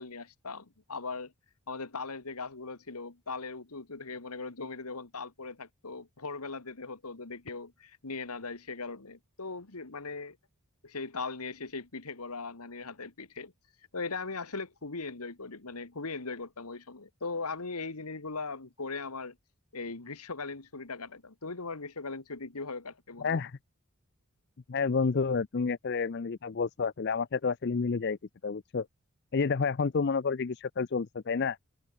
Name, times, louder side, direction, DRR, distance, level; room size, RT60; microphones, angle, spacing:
voice 1, 0.0-1.3 1.7-10.4 10.8-13.5 13.9-19.4 19.7-23.4, left 4 dB, 90° left, 1.9 m, -39 dB
voice 2, 23.2-23.6 24.7-28.2 28.4-28.9 29.3-31.6, left 5 dB, 50° left, 0.5 m, -29 dB
head